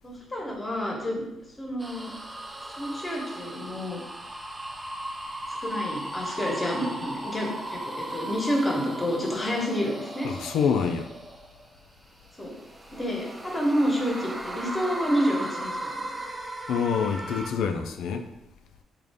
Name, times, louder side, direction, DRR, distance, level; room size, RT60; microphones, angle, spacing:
voice 1, 0.0-1.3 1.6-2.1 2.8-4.0 5.5-10.3 12.4-12.5 12.9-16.0, equal, 20° left, -2 dB, 1.0 m, -29 dB
sound 1, 1.8-11.7 12.3-17.5, right 1 dB, 15° right, 0.4 m, -37 dB
voice 2, 10.2-11.1 16.7-18.3, left 6 dB, 80° left, 6 dB, 0.3 m, -26 dB
3.7 x 2.4 x 3.4 m, 0.94 s
cardioid pair, 90°, 0 cm